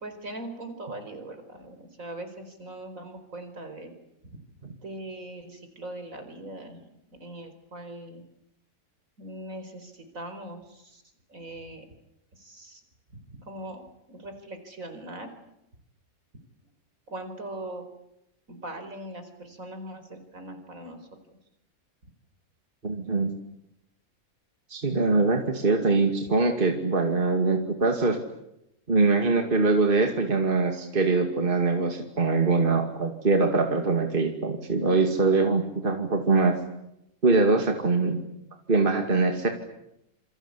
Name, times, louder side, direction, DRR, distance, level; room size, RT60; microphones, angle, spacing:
voice 1, 0.0-3.9 4.2-4.3 4.8-6.9 7.2-8.2 9.2-11.0 11.3-11.9 12.3-12.8 13.3-13.8 14.1-15.3 17.1-17.8 18.5-21.0, right 1 dB, 70° right, 8 dB, 4.9 m, -40 dB
voice 2, 22.8-23.3 24.7-28.2 28.9-36.5 37.2-38.2 38.7-39.5, right 3 dB, 35° right, 4 dB, 2.6 m, -23 dB
28.0 x 25.5 x 8.5 m, 0.84 s
omnidirectional pair, 1.5 m